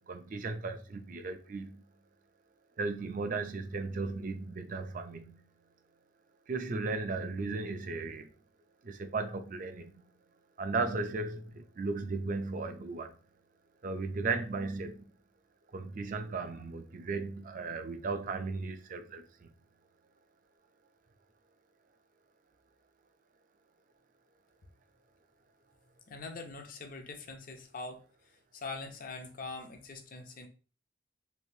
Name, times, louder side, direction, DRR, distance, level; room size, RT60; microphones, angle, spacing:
voice 1, 0.1-1.8 2.8-5.4 6.5-8.3 8.8-10.0 10.6-13.2 13.8-15.0 15.7-19.5, right 3 dB, 40° right, 0.4 m, -36 dB
voice 2, 26.1-28.0 28.5-30.5, left 3 dB, 45° left, 0.5 m, -43 dB
3.2 x 2.5 x 2.6 m
head